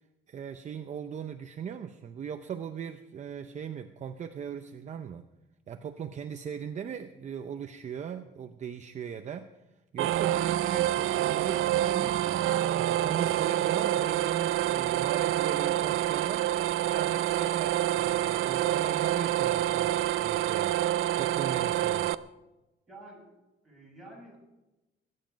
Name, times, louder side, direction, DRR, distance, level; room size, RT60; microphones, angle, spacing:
voice 1, 0.3-5.2 5.7-9.5 9.9-12.5 12.8-16.5 16.9-19.9 20.2-20.8 21.2-22.1, right 8 dB, 35° right, 8 dB, 0.6 m, -38 dB
sound 1, 10.0-22.1, right 13 dB, 90° right, 0.5 m, -27 dB
voice 2, 22.9-23.2 23.6-24.4, right 2 dB, ahead, -4 dB, 7.3 m, -49 dB
22.5 x 9.5 x 5.2 m, 1.0 s
cardioid pair, 155°, 20 cm